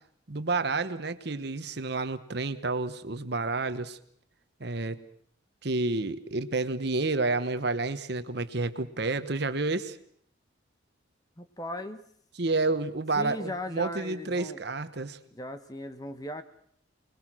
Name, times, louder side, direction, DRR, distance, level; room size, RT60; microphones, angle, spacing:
voice 1, 0.3-4.0 4.6-5.0 5.6-10.0 12.4-15.2, right 3 dB, 55° right, 11 dB, 1.1 m, -30 dB
voice 2, 11.4-12.1 13.1-14.6 15.3-16.4, left 1 dB, 20° left, 10 dB, 1.1 m, -37 dB
25.5 x 20.5 x 6.2 m, 0.63 s
head